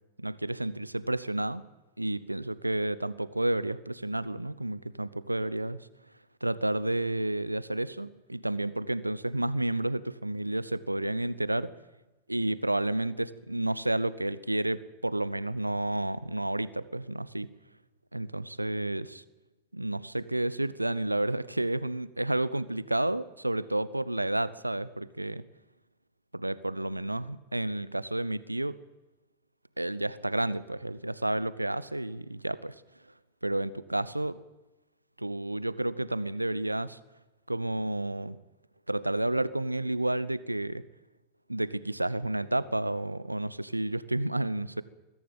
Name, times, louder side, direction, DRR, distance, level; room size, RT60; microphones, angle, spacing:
voice 1, 0.2-1.6 2.0-5.8 6.4-11.7 12.3-17.5 18.1-19.2 19.7-25.4 26.3-28.8 29.8-32.7 33.4-34.4 35.2-37.0 37.5-38.4 38.9-40.8 41.5-44.8, right 1 dB, 85° right, 18 dB, 0.7 m, -31 dB
21.5 x 13.5 x 9.2 m, 1.1 s
figure-of-eight pair, 90°, 0 cm